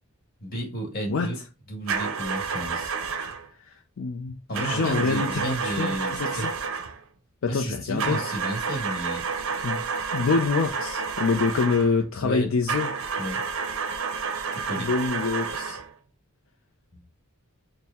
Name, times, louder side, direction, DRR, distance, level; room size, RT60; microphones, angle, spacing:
voice 1, 0.4-1.4 1.7-2.9 4.5-6.5 7.5-9.2 12.2-12.5 13.2-13.4 14.5-14.9 16.9-17.0, right 1 dB, 45° left, 1.3 m, -32 dB
sound 1, 1.9-3.5 4.5-7.0 8.0-12.0 12.7-15.9, right 5 dB, 70° right, 0.5 m, -30 dB
voice 2, 3.6-6.5 7.4-8.2 9.6-9.8 10.1-12.9 14.8-15.8, left 4 dB, 70° left, 0.4 m, -26 dB
4.3 x 2.1 x 3.4 m
head